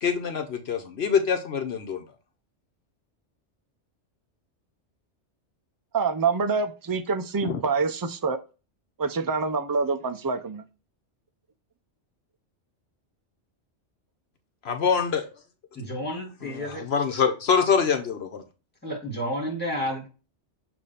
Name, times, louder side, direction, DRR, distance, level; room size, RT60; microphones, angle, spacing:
voice 1, 0.0-2.0 7.4-7.6 14.6-15.2 16.4-18.4, left 6 dB, 65° left, 6 dB, 1.0 m, -25 dB
voice 2, 5.9-8.4 9.0-10.6, right 4 dB, 30° right, 8 dB, 0.4 m, -26 dB
voice 3, 15.7-16.9 18.8-20.1, equal, 10° left, -2 dB, 2.0 m, -31 dB
6.6 x 2.7 x 5.6 m, 0.32 s
omnidirectional pair, 1.2 m